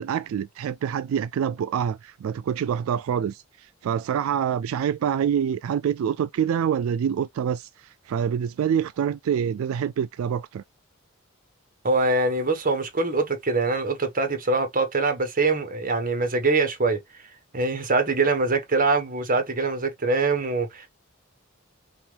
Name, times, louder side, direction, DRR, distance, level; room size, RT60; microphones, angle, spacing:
voice 1, 0.0-10.6, right 8 dB, 90° right, 0.3 m, -26 dB
voice 2, 11.8-17.0 17.5-20.9, right 3 dB, 45° right, 1.3 m, -23 dB
5.6 x 2.4 x 3.4 m
head